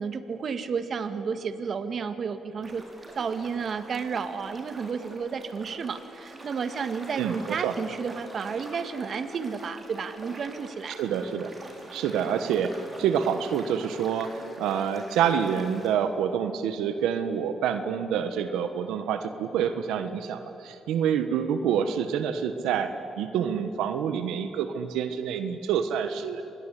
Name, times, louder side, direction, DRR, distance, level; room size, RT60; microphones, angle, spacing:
voice 1, 0.0-2.8 3.2-11.0, right 5 dB, 50° right, 10 dB, 1.8 m, -32 dB
sound 1, 2.6-15.9, right 2 dB, 30° right, 5.9 m, -45 dB
voice 2, 7.2-7.7 11.0-11.5 11.9-26.4, right 8 dB, 90° right, 9 dB, 1.3 m, -27 dB
26.0 x 20.5 x 9.9 m, 2.9 s
cardioid pair, 90°, 0 cm